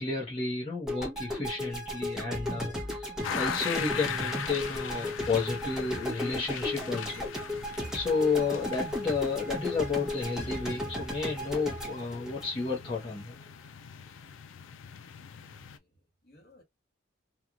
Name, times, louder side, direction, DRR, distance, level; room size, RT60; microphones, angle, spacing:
voice 1, 0.0-7.2 7.9-13.3, left 4 dB, 30° left, 1.0 m, -32 dB
sound 1, 0.9-13.1, left 1 dB, 5° right, 0.9 m, -35 dB
sound 2, 3.2-15.8, left 8 dB, 80° left, 0.4 m, -40 dB
voice 2, 15.4-16.6, left 1 dB, 50° left, 1.7 m, -59 dB
3.0 x 2.4 x 2.4 m
head